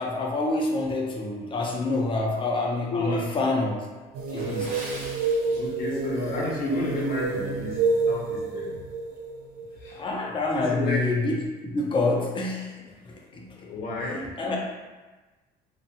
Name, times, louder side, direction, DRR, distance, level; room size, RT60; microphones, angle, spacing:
voice 1, 0.0-3.9 4.3-4.8 9.9-13.7 14.4-14.6, left 2 dB, 30° left, -1 dB, 0.5 m, -27 dB
voice 2, 2.9-3.2 4.8-5.1 5.5-8.8 9.8-10.0 10.5-11.1 13.6-14.3, left 1 dB, 60° left, -2 dB, 0.7 m, -31 dB
sound 1, 4.1-10.6, right 3 dB, 65° right, 0.4 m, -29 dB
Water / Splash splatter, 4.3-6.1 6.4-6.7 7.2-7.5 7.9-8.0, right 1 dB, 50° right, 0.8 m, -42 dB
2.5 x 2.1 x 2.7 m, 1.2 s
cardioid pair, 110°, 17 cm